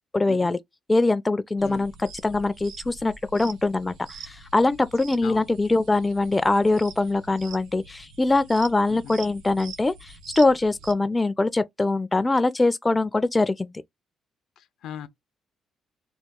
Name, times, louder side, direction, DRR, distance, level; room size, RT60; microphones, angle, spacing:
voice 1, 0.1-0.6 0.9-13.7, left 2 dB, 20° left, 0.3 m, -23 dB
sound 1, 1.6-10.9, right 4 dB, 90° right, 0.9 m, -45 dB
voice 2, 14.6-15.1, left 10 dB, 80° left, 0.5 m, -39 dB
3.0 x 2.2 x 3.5 m
cardioid pair, 90°, 0 cm